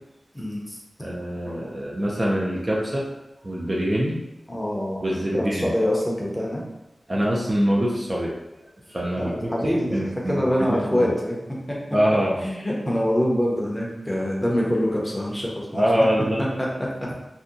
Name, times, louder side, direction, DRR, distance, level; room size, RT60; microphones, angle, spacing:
voice 1, 0.3-0.8 4.5-6.6 9.2-9.9 10.3-11.4 11.7-11.8 12.4-15.8 16.6-16.9, equal, 15° left, -3 dB, 0.7 m, -25 dB
voice 2, 1.0-3.1 3.4-4.2 5.0-5.7 7.1-8.3 8.9-9.3 9.9-11.1 11.9-12.4 15.7-16.5, equal, 30° right, -4 dB, 0.5 m, -24 dB
2.7 x 2.2 x 3.7 m, 0.95 s
wide cardioid pair, 95°, 0 cm